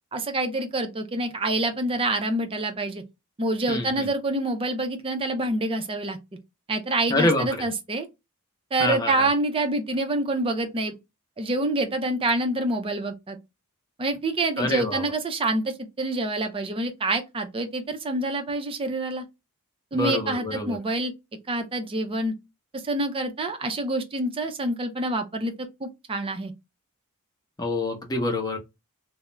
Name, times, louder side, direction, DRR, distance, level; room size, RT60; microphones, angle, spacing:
voice 1, 0.1-3.0 3.4-6.2 6.7-8.1 8.7-10.9 11.4-13.4 14.0-19.2 19.9-21.1 21.5-22.3 22.8-25.5 25.8-26.5, right 2 dB, 25° right, 0.5 m, -27 dB
voice 2, 3.7-4.1 7.1-7.7 8.8-9.3 14.6-15.0 19.9-20.8 27.6-28.6, left 2 dB, 15° left, 0.6 m, -26 dB
2.3 x 2.0 x 3.0 m
head